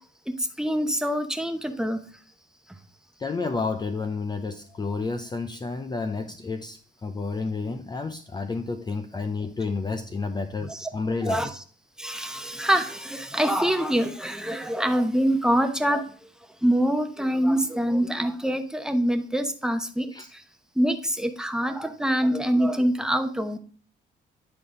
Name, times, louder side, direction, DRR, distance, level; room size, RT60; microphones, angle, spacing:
voice 1, 0.6-2.0 10.7-10.9 11.2-11.5 12.0-16.0 16.6-20.1 20.8-23.6, equal, 5° right, 6 dB, 0.8 m, -25 dB
voice 2, 3.2-11.5 20.1-20.3, left 4 dB, 20° left, 8 dB, 0.5 m, -30 dB
9.6 x 3.9 x 3.7 m, 0.43 s
cardioid pair, 90°, 20 cm